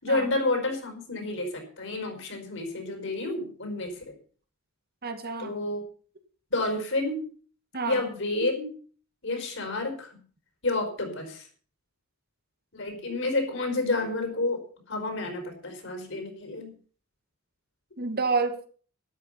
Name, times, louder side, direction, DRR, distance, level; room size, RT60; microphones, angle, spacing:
voice 1, 0.0-4.1 5.4-5.8 6.5-7.2 7.8-8.7 9.2-10.1 10.6-11.5 12.7-14.6 14.9-16.7, left 2 dB, 60° left, 4 dB, 5.2 m, -30 dB
voice 2, 5.0-5.6 7.7-8.0 18.0-18.7, right 4 dB, 45° right, 7 dB, 2.0 m, -29 dB
13.0 x 12.5 x 5.8 m, 0.42 s
head